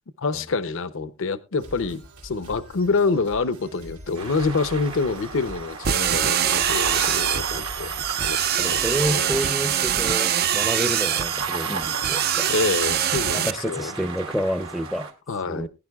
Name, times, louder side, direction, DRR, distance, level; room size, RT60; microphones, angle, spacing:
voice 1, 0.2-7.9 8.2-9.3 12.5-13.9 15.3-15.7, left 4 dB, 60° left, 0.6 m, -26 dB
sound 1, 1.6-10.3, equal, 90° right, 3.8 m, -43 dB
sound 2, 4.2-15.1, right 5 dB, 75° right, 2.3 m, -34 dB
sound 3, 5.8-13.5, right 10 dB, 45° right, 0.5 m, -24 dB
voice 2, 8.6-12.5 13.3-15.1 15.5-15.7, equal, ahead, 0.6 m, -29 dB
21.0 x 10.0 x 2.3 m
head